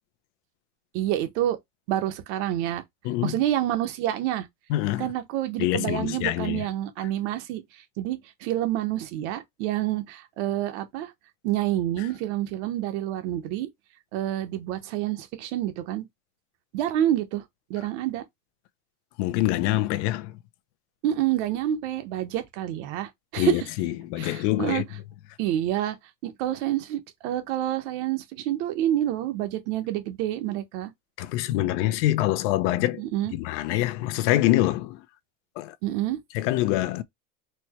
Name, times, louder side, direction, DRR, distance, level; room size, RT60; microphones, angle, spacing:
voice 1, 0.9-1.6 1.9-2.8 3.2-4.5 5.0-11.1 11.4-13.7 14.1-16.0 16.7-17.4 17.7-18.2 21.0-23.7 24.2-24.8 25.4-26.0 26.2-30.9 33.0-33.3 35.8-36.2, right 12 dB, 75° right, 1.0 m, -28 dB
voice 2, 4.7-5.1 5.6-6.6 19.2-20.3 23.4-24.8 31.2-33.0 33.3-35.0 35.6-35.7 36.3-37.0, left 15 dB, 80° left, 0.6 m, -25 dB
4.3 x 2.2 x 2.9 m
cardioid pair, 165°, 34 cm